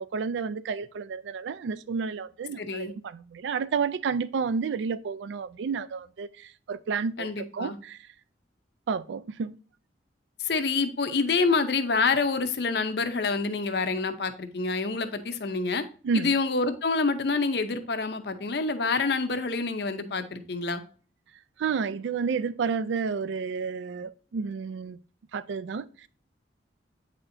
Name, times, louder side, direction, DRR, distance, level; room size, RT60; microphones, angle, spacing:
voice 1, 0.0-8.0 8.9-9.6 16.0-16.3 21.6-25.0 25.3-26.1, right 5 dB, 80° right, 0.3 m, -31 dB
voice 2, 2.6-2.9 7.2-7.8 10.4-15.8 16.1-20.8, left 4 dB, 60° left, 0.6 m, -27 dB
8.6 x 4.2 x 2.6 m
head